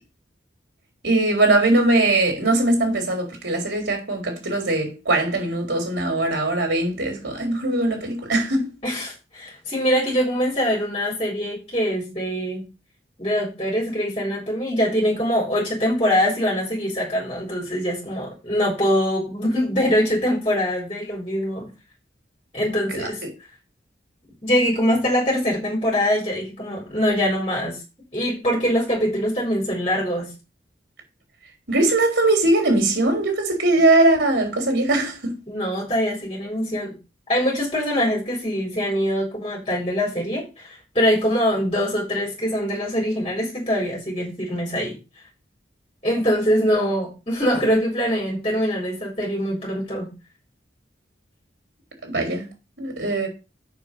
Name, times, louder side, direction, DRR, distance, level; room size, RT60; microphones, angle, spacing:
voice 1, 1.0-8.7 22.9-23.3 31.7-35.4 52.0-52.5 52.8-53.3, right 2 dB, 80° right, 4.0 m, -21 dB
voice 2, 8.8-12.7 13.2-21.7 22.5-23.2 24.4-27.8 28.1-30.3 35.5-36.9 37.3-45.0 46.0-50.1, equal, 30° left, 4.4 m, -23 dB
6.9 x 6.2 x 6.9 m
head